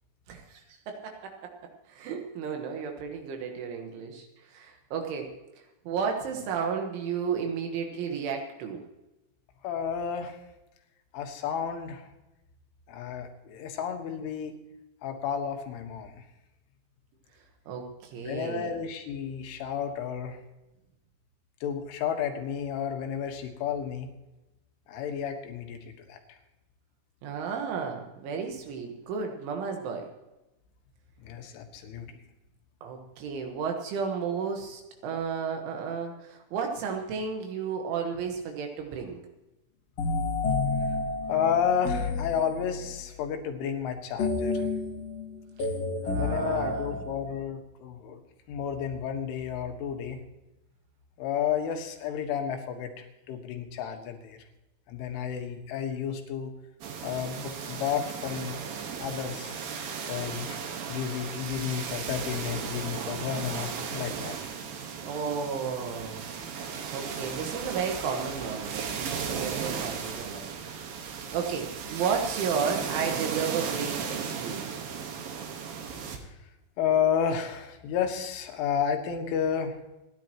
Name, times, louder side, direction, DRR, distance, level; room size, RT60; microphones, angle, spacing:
voice 1, 0.3-1.5 1.9-5.3 5.9-8.8 17.7-18.7 27.2-30.1 32.8-39.2 45.6-45.7 46.0-47.0 65.0-66.3 66.9-70.5 71.3-74.8, right 6 dB, 80° right, 3 dB, 3.8 m, -33 dB
voice 2, 9.6-10.4 11.1-12.1 12.9-14.6 15.0-16.2 18.2-20.4 21.6-24.1 24.9-26.4 31.2-32.1 41.3-44.7 46.1-48.2 48.5-50.2 51.2-54.4 54.9-56.5 57.0-58.6 59.0-59.5 60.1-60.6 60.9-64.4 76.8-79.7, left 8 dB, 85° left, 5 dB, 4.0 m, -31 dB
sound 1, 40.0-43.0 44.2-47.5, left 3 dB, 55° left, 2.0 m, -30 dB
sound 2, 56.8-76.2, right 6 dB, 65° right, 2.6 m, -36 dB
27.5 x 10.5 x 3.0 m, 0.99 s
omnidirectional pair, 5.5 m